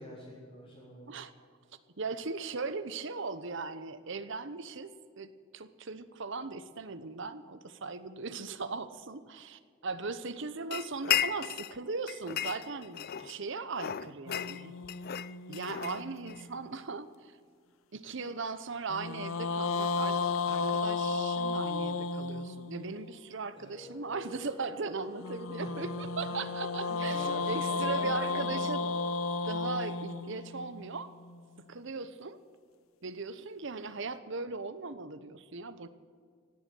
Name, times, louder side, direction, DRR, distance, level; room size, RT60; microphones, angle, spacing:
voice 1, 0.0-1.2 23.5-24.0 25.6-28.6, equal, 30° left, -8 dB, 3.8 m, -47 dB
voice 2, 2.0-14.7 15.5-17.3 17.9-20.2 20.5-28.9 29.4-31.1 31.7-32.4 33.0-35.9, right 4 dB, 60° right, 12 dB, 0.9 m, -38 dB
Putting a glass bottle on the ground, 10.7-11.8 12.1-13.4 13.8-16.4, left 10 dB, 45° left, 0.4 m, -34 dB
sound 1, 14.3-16.7 18.9-23.1 25.2-31.4, left 4 dB, 75° left, 0.8 m, -34 dB
Wind instrument woodwind instrument, 23.6-29.3, left 4 dB, 10° left, 2.5 m, -50 dB
17.0 x 8.3 x 8.9 m, 2.1 s
head